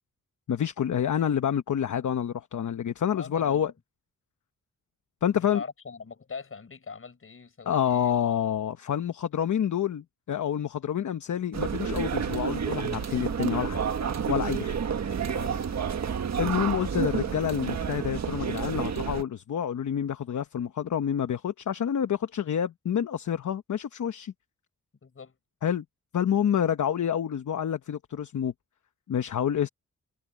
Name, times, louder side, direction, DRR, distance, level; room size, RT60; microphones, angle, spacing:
voice 1, 0.5-3.7 5.2-5.6 7.7-13.8 14.3-14.7 16.4-24.3 25.6-25.8 26.1-28.5 29.1-29.7, left 9 dB, 65° left, 1.0 m, -28 dB
voice 2, 3.1-3.6 5.3-8.2 14.7-15.7 25.0-25.4, left 5 dB, 45° left, 5.0 m, -42 dB
sound 1, 11.5-19.2, right 7 dB, 55° right, 1.5 m, -30 dB
wide cardioid pair, 135°, 32 cm